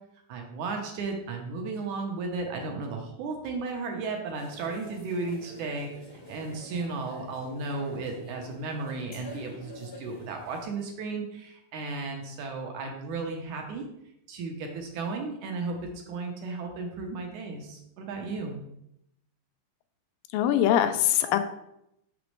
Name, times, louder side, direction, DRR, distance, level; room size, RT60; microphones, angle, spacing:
voice 1, 0.3-13.8 14.3-18.6, right 3 dB, 75° right, 2 dB, 2.0 m, -34 dB
sound 1, 4.4-10.6, equal, 50° left, 0.7 m, -47 dB
voice 2, 20.3-21.4, left 11 dB, 90° left, 9 dB, 2.3 m, -22 dB
6.1 x 6.0 x 3.2 m, 0.80 s
omnidirectional pair, 3.9 m